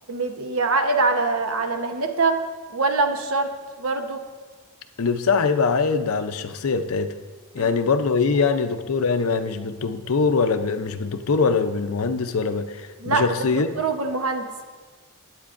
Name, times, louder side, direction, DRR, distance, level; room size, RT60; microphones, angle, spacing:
voice 1, 0.1-2.4 2.7-3.5 3.8-4.2 7.6-7.7 13.0-14.6, right 3 dB, 65° right, 5 dB, 0.9 m, -24 dB
voice 2, 5.0-7.1 7.5-13.7, left 4 dB, 70° left, 9 dB, 0.6 m, -23 dB
15.5 x 9.6 x 2.5 m, 1.4 s
head